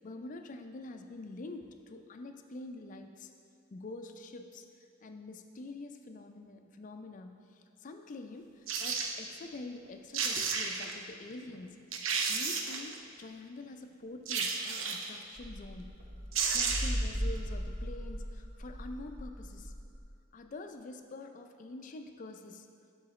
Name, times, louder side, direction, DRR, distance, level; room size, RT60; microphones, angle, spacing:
voice 1, 0.0-3.3 3.7-4.7 5.0-11.8 12.3-15.9 16.4-19.7 20.3-22.7, left 2 dB, 40° left, 6 dB, 0.4 m, -46 dB
sound 1, 8.7-9.1 9.9-10.0 10.1-10.9 11.5-11.6 11.9-12.9 14.3-15.2 16.0-16.1 16.3-17.0 17.4-17.5, right 5 dB, 75° right, 0.6 m, -32 dB
sound 2, 15.4-20.0, equal, 40° right, 0.9 m, -38 dB
11.5 x 3.8 x 3.1 m, 2.3 s
head